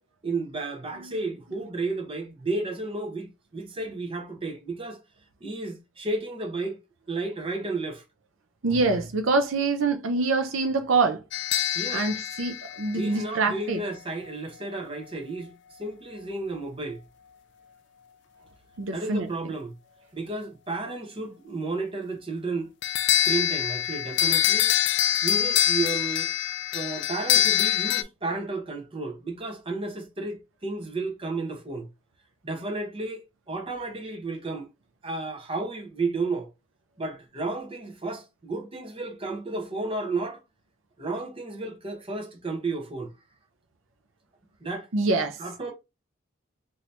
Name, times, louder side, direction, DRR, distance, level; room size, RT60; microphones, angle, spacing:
voice 1, 0.2-5.0 5.4-6.8 7.1-8.0 11.7-12.1 13.0-17.0 18.9-19.7 20.1-22.7 23.1-24.8 25.2-26.3 26.7-31.9 32.4-34.7 35.0-36.5 37.0-40.4 41.0-43.1 44.6-44.9 45.4-45.7, right 3 dB, 25° right, 0.9 m, -32 dB
voice 2, 8.6-11.2 11.9-13.8 18.8-19.5 44.9-45.4, right 3 dB, 75° right, 0.6 m, -25 dB
sound 1, 11.3-13.6 22.8-28.0, left 10 dB, 55° left, 0.3 m, -25 dB
2.8 x 2.8 x 3.3 m
head